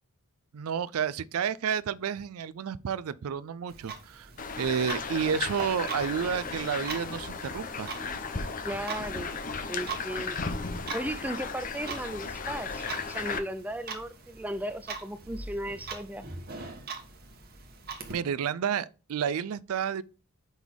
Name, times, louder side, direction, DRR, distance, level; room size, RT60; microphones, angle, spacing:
voice 1, 0.5-4.3 4.6-7.9 18.1-20.0, right 7 dB, 75° right, 0.4 m, -30 dB
Clock, 3.7-18.1, right 4 dB, 45° right, 1.2 m, -42 dB
sound 1, 4.4-13.4, left 4 dB, 40° left, 0.7 m, -35 dB
voice 2, 8.6-9.3 9.7-10.4 10.9-16.3, right 1 dB, 5° right, 0.4 m, -36 dB
5.3 x 4.0 x 4.6 m
head